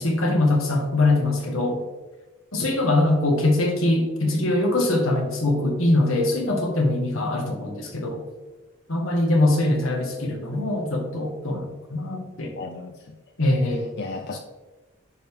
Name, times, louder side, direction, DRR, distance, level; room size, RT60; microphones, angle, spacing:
voice 1, 0.0-1.8 2.5-8.2 8.9-12.5 13.4-13.8, left 2 dB, 80° left, 2 dB, 1.6 m, -22 dB
voice 2, 12.6-13.2 13.7-14.4, left 3 dB, 50° left, 4 dB, 0.5 m, -35 dB
9.8 x 5.1 x 3.5 m, 1.2 s
head